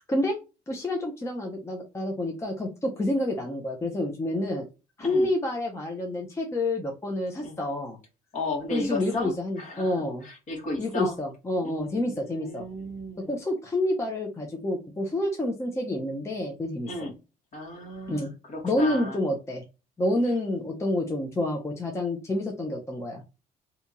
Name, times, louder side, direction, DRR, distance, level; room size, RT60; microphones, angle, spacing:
voice 1, 0.1-0.4 0.7-4.7 5.0-8.0 8.7-10.3 10.8-12.7 13.2-16.9 18.1-18.3 18.6-19.6 20.0-23.2, left 1 dB, 15° left, 2 dB, 0.6 m, -28 dB
voice 2, 8.3-10.0 10.2-11.1 11.6-13.3 16.9-17.1 17.5-19.2, left 2 dB, 45° left, 2 dB, 1.5 m, -34 dB
2.8 x 2.7 x 3.6 m, 0.30 s
cardioid pair, 110°, 17 cm